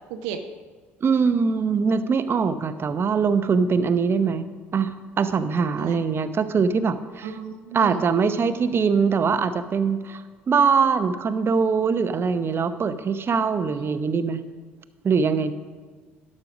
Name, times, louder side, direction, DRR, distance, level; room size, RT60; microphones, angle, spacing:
voice 1, 0.1-0.4 5.8-6.0 7.2-8.1 13.8-14.1, right 8 dB, 75° right, 5 dB, 0.7 m, -34 dB
voice 2, 1.0-7.3 7.7-14.4 15.0-15.5, right 5 dB, 40° right, 10 dB, 0.8 m, -22 dB
11.5 x 6.5 x 6.1 m, 1.4 s
hypercardioid pair, 60°, 6 cm